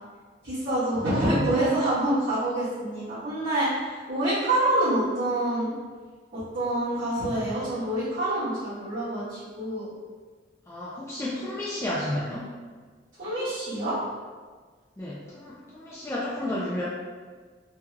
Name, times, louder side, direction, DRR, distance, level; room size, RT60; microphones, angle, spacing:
voice 1, 0.4-5.7 6.3-9.9 13.2-14.0, right 1 dB, 65° right, -16 dB, 1.5 m, -26 dB
voice 2, 1.0-1.5 10.7-12.5 15.0-16.8, left 1 dB, 15° left, -8 dB, 0.4 m, -32 dB
3.5 x 2.2 x 3.2 m, 1.5 s
head